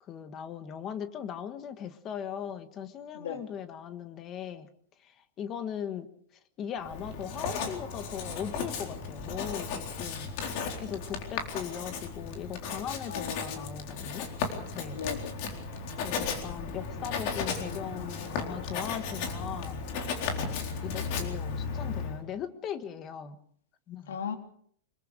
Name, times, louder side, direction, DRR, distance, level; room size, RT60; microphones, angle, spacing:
voice 1, 0.0-4.7 5.0-6.1 6.6-10.3 10.8-14.3 14.7-15.0 16.0-19.8 20.4-23.4 23.9-24.2, left 8 dB, 20° left, 10 dB, 1.5 m, -39 dB
Writing, 6.8-22.2, left 5 dB, 35° left, 4.0 m, -35 dB
voice 2, 13.1-13.7 14.9-15.4 24.1-24.4, left 7 dB, 90° left, 5 dB, 3.6 m, -36 dB
25.5 x 23.0 x 5.1 m, 0.63 s
supercardioid pair, 180°, 0 cm